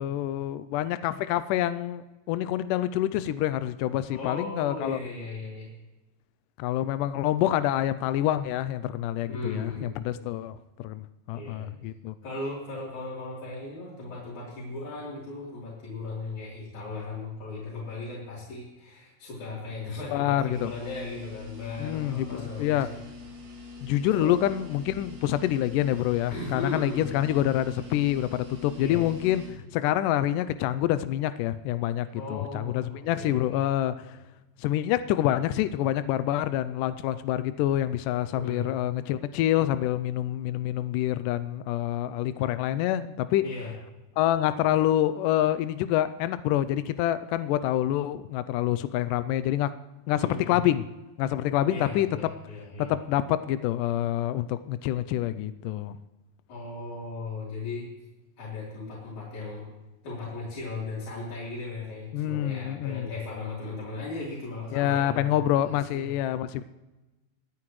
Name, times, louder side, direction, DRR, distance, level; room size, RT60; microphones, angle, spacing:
voice 1, 0.0-5.0 6.6-10.6 10.8-11.0 11.3-12.1 20.1-20.7 21.8-22.9 23.8-34.2 34.6-43.5 44.2-49.7 50.1-50.9 51.2-52.1 52.8-56.0 62.1-63.1 64.7-66.6, left 12 dB, 85° left, 13 dB, 1.9 m, -27 dB
voice 2, 4.1-5.7 9.3-10.2 11.3-11.7 12.2-23.0 24.1-24.4 26.3-27.2 28.8-29.0 29.6-29.7 32.1-33.6 38.4-38.6 43.4-43.7 50.1-50.6 51.7-52.9 56.5-57.8 58.4-59.7 60.0-66.1, left 3 dB, 55° left, -8 dB, 4.9 m, -37 dB
sound 1, 20.5-29.5, left 3 dB, 90° right, 4.6 m, -44 dB
25.0 x 9.7 x 3.1 m, 1.1 s
omnidirectional pair, 4.2 m